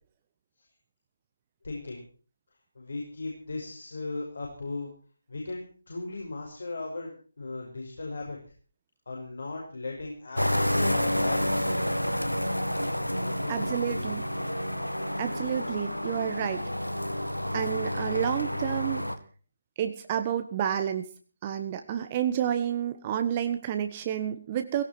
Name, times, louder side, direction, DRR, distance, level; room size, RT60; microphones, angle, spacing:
voice 1, 1.6-2.0 2.8-4.9 5.3-8.4 9.1-11.6 13.2-13.7, left 3 dB, 55° left, 0 dB, 5.6 m, -37 dB
sound 1, 10.4-19.2, equal, 90° left, 1.8 m, -29 dB
voice 2, 13.5-14.2 15.2-16.7 17.5-19.0 19.8-21.1 21.4-24.8, right 9 dB, 25° right, 7 dB, 1.2 m, -30 dB
18.0 x 17.0 x 4.5 m, 0.39 s
figure-of-eight pair, 150°, 0 cm